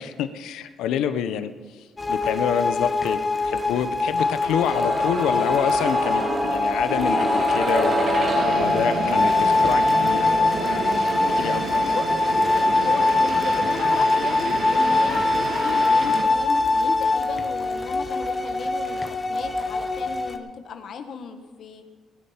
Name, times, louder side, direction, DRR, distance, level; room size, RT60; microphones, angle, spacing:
voice 1, 0.0-1.5 2.1-10.2 10.6-11.0 11.3-12.0, left 9 dB, 90° left, 11 dB, 0.8 m, -27 dB
sound 1, 2.0-20.4, left 3 dB, 25° left, 1.3 m, -23 dB
sound 2, 4.2-16.0 16.3-16.4, right 2 dB, 50° right, 4.4 m, -29 dB
sound 3, 8.3-16.2, right 4 dB, 80° right, 2.0 m, -31 dB
voice 2, 8.6-9.0 11.9-12.1 12.8-21.9, left 6 dB, 65° left, 7 dB, 1.4 m, -35 dB
19.0 x 9.7 x 5.8 m, 1.4 s
cardioid pair, 90°, 0 cm